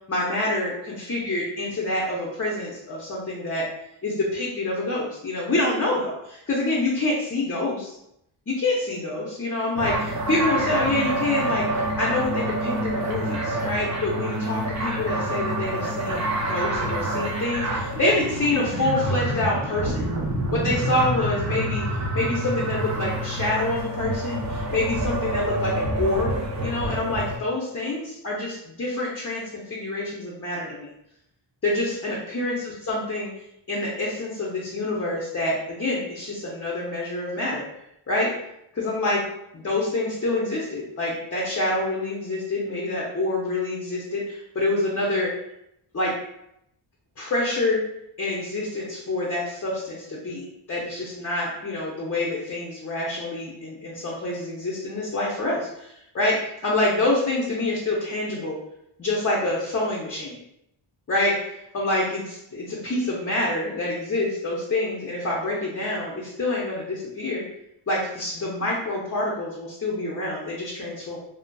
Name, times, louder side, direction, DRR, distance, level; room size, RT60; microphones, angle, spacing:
voice 1, 0.1-3.7 4.0-8.0 8.5-20.1 20.5-30.9 31.6-33.3 33.7-37.7 38.1-38.3 38.7-39.2 39.5-45.3 45.9-46.1 47.2-47.8 48.2-58.6 59.0-60.4 61.1-61.5 61.7-67.4 67.9-71.2, left 2 dB, 30° left, -4 dB, 0.6 m, -27 dB
sound 1, 9.8-27.4, right 1 dB, 35° right, 0.5 m, -27 dB
2.6 x 2.4 x 2.2 m, 0.79 s
cardioid pair, 70°, 50 cm